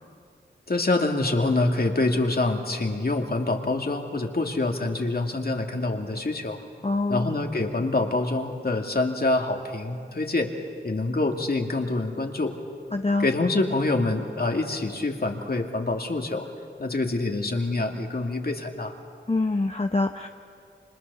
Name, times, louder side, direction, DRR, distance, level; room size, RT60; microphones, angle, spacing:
voice 1, 0.7-6.6 7.1-10.5 10.8-12.5 13.2-16.5 16.8-18.9, left 2 dB, 50° left, 3 dB, 2.4 m, -26 dB
voice 2, 6.8-7.3 12.9-13.3 19.3-20.3, left 2 dB, 30° left, 5 dB, 0.9 m, -25 dB
30.0 x 26.0 x 6.9 m, 2.4 s
wide cardioid pair, 60°, 20 cm